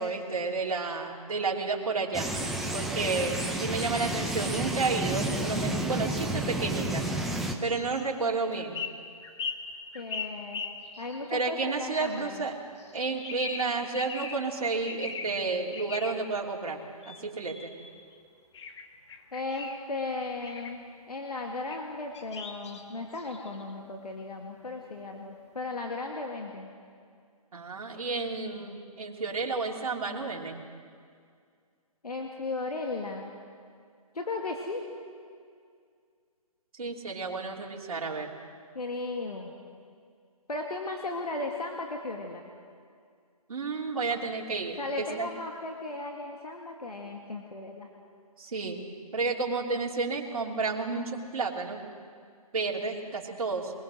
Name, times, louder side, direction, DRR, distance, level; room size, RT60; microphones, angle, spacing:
voice 1, 0.0-2.3 2.7-7.0 7.6-8.8 11.3-12.6 12.9-17.7 27.5-30.6 36.8-38.3 43.5-45.3 48.4-48.8 49.1-51.8 52.5-53.7, right 4 dB, 65° right, -2 dB, 3.1 m, -31 dB
sound 1, 2.1-7.6, right 1 dB, ahead, 0.9 m, -31 dB
voice 2, 3.0-3.5 9.9-10.6 11.0-12.5 19.3-26.7 32.0-33.3 34.1-34.9 38.7-39.5 40.5-42.4 44.8-47.9, left 2 dB, 85° left, 1 dB, 2.4 m, -36 dB
sound 2, 7.7-8.0 8.6-11.3 12.0-12.5 12.8-14.5 14.8-15.4 15.7-16.3 17.0-18.1 18.5-19.8 20.4-20.8 21.7-21.8 22.1-23.7, left 5 dB, 50° left, 1.8 m, -40 dB
22.5 x 21.5 x 6.4 m, 2.2 s
hypercardioid pair, 150°, 19 cm